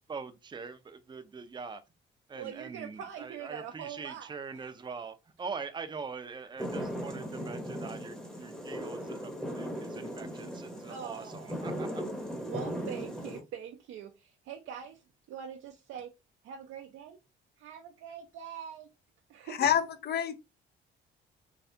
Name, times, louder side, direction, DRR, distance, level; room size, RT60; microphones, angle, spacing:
voice 1, 0.1-1.8 2.3-12.1, right 5 dB, 25° right, 0.5 m, -43 dB
voice 2, 2.3-4.7 6.7-6.9 10.8-11.6 12.5-14.9 15.3-16.1 16.4-17.2 17.6-18.9 19.3-19.6, right 8 dB, 80° right, 0.5 m, -43 dB
sound 1, 6.6-13.4, equal, 5° left, 0.8 m, -38 dB
voice 3, 19.6-20.4, left 9 dB, 55° left, 0.6 m, -27 dB
3.3 x 2.3 x 2.8 m
cardioid pair, 90°, 20 cm